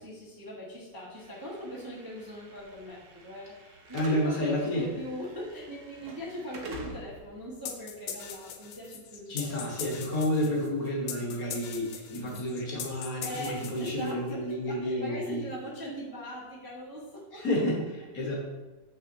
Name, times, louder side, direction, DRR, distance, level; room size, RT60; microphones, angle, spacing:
voice 1, 0.0-9.6 12.1-12.4 13.2-17.4, equal, 15° right, -6 dB, 0.7 m, -41 dB
Slam / Alarm, 1.2-9.2, right 2 dB, 60° right, 0.8 m, -48 dB
voice 2, 3.9-4.9 9.3-15.5 17.3-18.3, left 1 dB, 50° left, -3 dB, 1.5 m, -30 dB
sound 1, 7.6-14.3, left 8 dB, 90° left, 1.5 m, -41 dB
6.6 x 5.7 x 2.7 m, 1.1 s
omnidirectional pair, 2.2 m